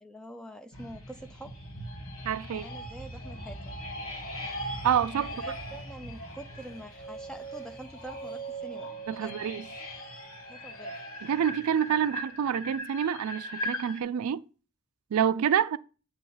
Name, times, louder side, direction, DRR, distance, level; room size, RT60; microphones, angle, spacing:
voice 1, 0.0-1.5 2.5-3.8 5.1-9.4 10.4-11.0, right 1 dB, 5° left, 0.4 m, -45 dB
sound 1, 0.7-14.0, equal, 70° left, 1.4 m, -40 dB
voice 2, 2.2-2.7 4.8-5.3 9.1-9.6 11.2-14.4 15.1-15.8, right 8 dB, 85° right, 0.3 m, -27 dB
sound 2, 6.7-10.8, right 6 dB, 40° left, 1.6 m, -43 dB
8.4 x 3.0 x 5.6 m
head